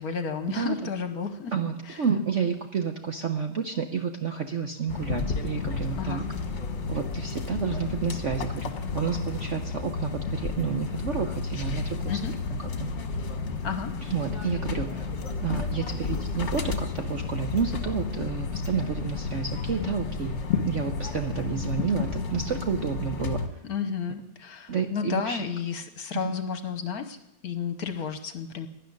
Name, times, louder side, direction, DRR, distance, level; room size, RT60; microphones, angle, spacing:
voice 1, 0.0-1.5 1.8-2.0 6.0-6.3 12.1-12.3 13.6-13.9 23.6-27.2 27.4-28.7, left 6 dB, 55° left, 9 dB, 1.4 m, -32 dB
voice 2, 1.5-6.2 6.9-12.2 12.5-12.9 14.1-15.0 15.4-20.4 20.6-23.4 24.7-25.4 26.2-26.3, right 6 dB, 55° right, 5 dB, 0.9 m, -30 dB
sound 1, 4.9-23.5, left 4 dB, 40° left, 1.5 m, -32 dB
12.5 x 11.0 x 9.9 m, 0.92 s
omnidirectional pair, 2.2 m